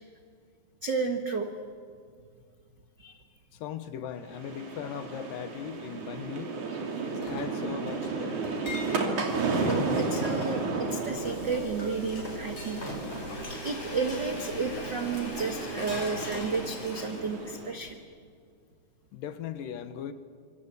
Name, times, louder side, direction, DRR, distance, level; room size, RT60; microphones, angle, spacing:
voice 1, 0.8-1.5 3.0-3.2 9.3-12.8 13.6-18.0, right 4 dB, 85° right, 5 dB, 0.9 m, -32 dB
voice 2, 3.5-6.6 7.0-8.5 19.1-20.1, left 9 dB, 70° left, 11 dB, 2.5 m, -39 dB
sound 1, 4.3-17.8, right 3 dB, 50° right, 4.1 m, -33 dB
Chink clink, 7.2-9.2 9.7-9.9 10.2-10.6 11.8-13.8 15.1-17.5 17.9-18.0, left 1 dB, 15° left, 3.7 m, -41 dB
Frying (food), 10.5-17.6, left 1 dB, 50° left, 8.1 m, -42 dB
26.0 x 26.0 x 8.3 m, 2.2 s
omnidirectional pair, 4.5 m